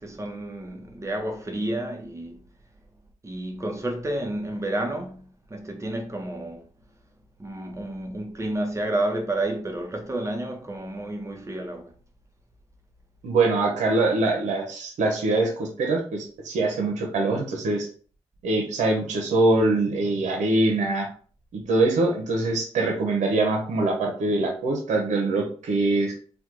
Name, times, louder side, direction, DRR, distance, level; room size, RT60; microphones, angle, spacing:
voice 1, 0.0-2.4 3.2-5.2 5.5-6.7 7.4-11.9, right 1 dB, 25° right, 0.8 m, -30 dB
voice 2, 13.2-17.9 18.4-21.1 21.5-26.1, right 2 dB, 80° right, 0.8 m, -23 dB
3.4 x 2.2 x 2.9 m
cardioid pair, 60°, 12 cm